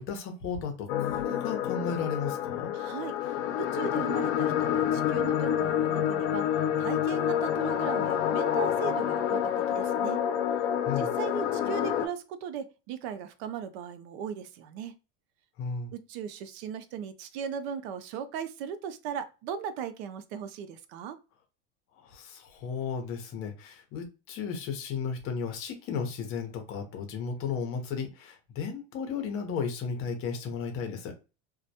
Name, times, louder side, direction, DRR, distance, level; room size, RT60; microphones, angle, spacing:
voice 1, 0.0-2.7 10.9-11.1 15.6-15.9 22.0-31.2, left 6 dB, 40° left, 0.7 m, -34 dB
sound 1, 0.9-12.1, left 9 dB, 80° left, 0.5 m, -28 dB
voice 2, 2.7-6.5 6.8-10.2 11.0-15.0 15.9-21.2, right 8 dB, 70° right, 0.5 m, -38 dB
2.2 x 2.1 x 2.7 m
supercardioid pair, 150°, 33 cm